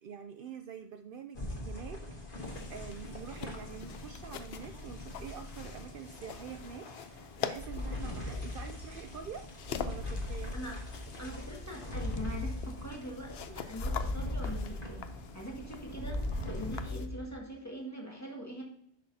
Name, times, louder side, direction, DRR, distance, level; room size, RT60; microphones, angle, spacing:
voice 1, 0.0-2.0 2.3-9.4 9.8-10.5, right 7 dB, 65° right, 7 dB, 0.7 m, -46 dB
sound 1, 1.3-17.3, left 1 dB, 55° left, 1.7 m, -40 dB
sound 2, 2.4-17.1, left 8 dB, 75° left, 0.9 m, -45 dB
voice 2, 11.2-18.6, equal, 15° left, -2 dB, 1.7 m, -43 dB
10.0 x 6.3 x 2.7 m, 0.71 s
omnidirectional pair, 1.1 m